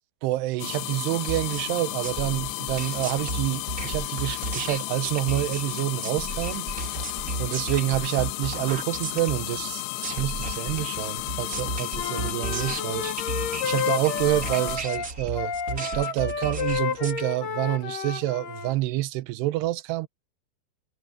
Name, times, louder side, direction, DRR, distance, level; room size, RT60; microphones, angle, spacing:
voice 1, 0.2-6.7 7.4-13.1 13.6-20.1, right 16 dB, 80° right, 2.9 m, -28 dB
sound 1, 0.6-14.8, left 18 dB, 90° left, 2.9 m, -33 dB
sound 2, 1.3-17.2, right 3 dB, 25° right, 2.2 m, -34 dB
Wind instrument woodwind instrument, 11.9-18.7, left 6 dB, 55° left, 3.7 m, -31 dB
omnidirectional pair, 4.8 m